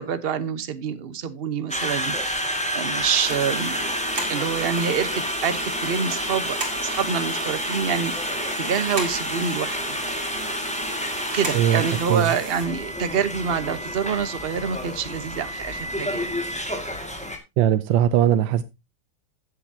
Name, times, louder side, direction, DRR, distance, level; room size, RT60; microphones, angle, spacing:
voice 1, 0.0-2.1 2.7-3.8 4.3-10.0 11.3-16.4, right 7 dB, 40° right, 1.0 m, -26 dB
Conversation, 1.7-17.4, equal, 5° left, 1.8 m, -29 dB
sound 1, 3.2-12.6, right 2 dB, 55° right, 4.0 m, -35 dB
voice 2, 17.6-18.6, right 11 dB, 90° right, 1.4 m, -19 dB
15.0 x 8.0 x 2.8 m
omnidirectional pair, 2.0 m